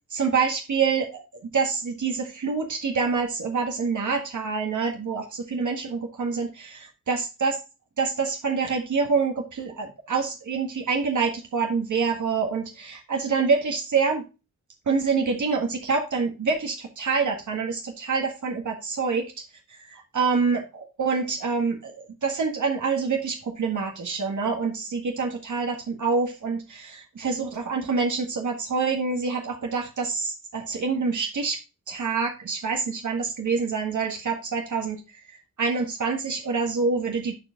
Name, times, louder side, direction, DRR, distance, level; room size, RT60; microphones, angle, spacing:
voice 1, 0.1-7.5 8.0-14.2 14.9-19.2 19.7-31.6 31.9-35.0 35.3-37.3, right 5 dB, 65° right, 2 dB, 1.7 m, -26 dB
11.5 x 4.7 x 3.7 m, 0.28 s
wide cardioid pair, 160°, 31 cm